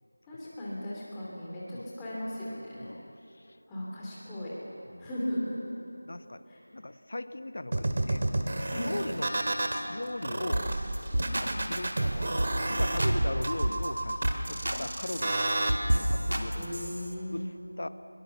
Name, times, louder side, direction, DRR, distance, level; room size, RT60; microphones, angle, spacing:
voice 1, 0.3-2.9 3.7-4.5 5.0-5.7 6.5-6.6 8.7-8.9 11.1-11.4 14.6-14.8 16.5-17.4, left 1 dB, 5° left, -8 dB, 3.0 m, -37 dB
voice 2, 2.8-3.6 4.9-5.1 6.0-6.4 6.7-8.2 8.7-9.3 9.9-10.8 11.4-12.3 12.7-16.5 17.3-17.9, left 1 dB, 50° left, 11 dB, 1.1 m, -39 dB
sound 1, 7.7-9.8 10.2-15.7, right 2 dB, 40° right, 2.0 m, -30 dB
sound 2, 10.5-10.7 10.9-11.5 11.8-12.0 12.4-12.5 12.8-13.9 14.2-14.8 15.1-17.1, right 1 dB, 80° right, 3.0 m, -29 dB
23.0 x 21.5 x 7.3 m, 3.0 s
figure-of-eight pair, 175°, 0 cm